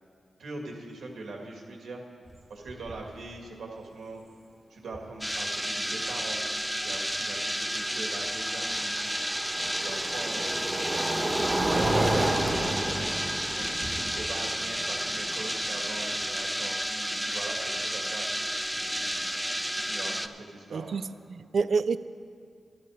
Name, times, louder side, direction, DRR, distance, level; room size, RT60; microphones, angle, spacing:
voice 1, 0.4-2.0 2.5-4.2 4.7-6.5 6.8-9.0 9.4-13.1 13.6-18.3 18.7-21.0, right 2 dB, 80° right, 1.9 m, -42 dB
sound 1, 2.3-2.4 2.7-3.1 4.9-5.0 8.0-16.1, right 1 dB, 30° right, 1.5 m, -31 dB
sound 2, 5.2-20.3, equal, 5° right, 0.5 m, -31 dB
voice 2, 20.7-21.0 21.3-22.0, right 5 dB, 65° right, 0.4 m, -27 dB
12.0 x 12.0 x 4.9 m
cardioid pair, 70°, 0 cm